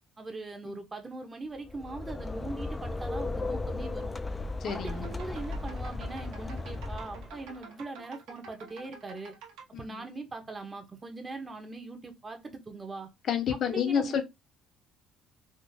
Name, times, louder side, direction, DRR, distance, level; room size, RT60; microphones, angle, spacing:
voice 1, 0.2-4.1 4.6-9.3 9.7-13.1 13.7-14.2, right 3 dB, 20° right, 0.8 m, -41 dB
sound 1, 1.6-7.6, left 2 dB, 15° left, 0.3 m, -36 dB
voice 2, 4.6-5.1 9.7-10.0 13.3-14.2, left 8 dB, 50° left, 0.7 m, -29 dB
sound 2, 4.7-9.6, right 4 dB, 90° right, 1.2 m, -49 dB
3.6 x 2.5 x 2.6 m
cardioid pair, 115°, 0 cm